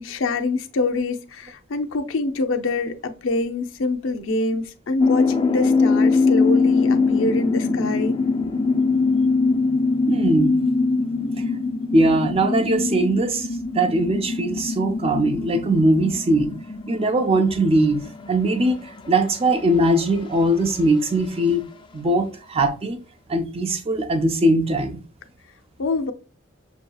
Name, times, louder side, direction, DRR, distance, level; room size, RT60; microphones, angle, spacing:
voice 1, 0.0-8.2 25.8-26.1, left 3 dB, 90° left, 0.6 m, -25 dB
sound 1, 5.0-21.1, left 4 dB, 25° left, 0.4 m, -23 dB
voice 2, 10.1-10.5 11.9-13.5 13.7-16.6 16.9-21.6 21.9-23.0 23.3-25.0, right 1 dB, 30° right, 0.5 m, -20 dB
6.3 x 2.7 x 2.3 m
head